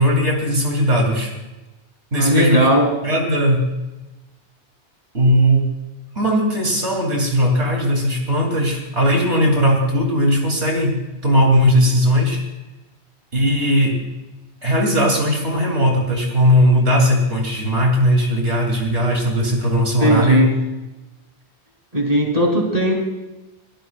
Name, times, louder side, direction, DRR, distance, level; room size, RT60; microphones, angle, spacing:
voice 1, 0.0-1.3 2.1-2.7 3.0-3.6 5.1-5.7 6.1-11.0 11.2-12.4 13.3-14.0 14.6-20.5, equal, 85° right, 0 dB, 3.4 m, -18 dB
voice 2, 2.1-2.9 20.0-20.6 21.9-22.9, equal, 35° right, 0 dB, 3.5 m, -17 dB
21.5 x 17.0 x 2.5 m, 1.0 s
omnidirectional pair, 1.1 m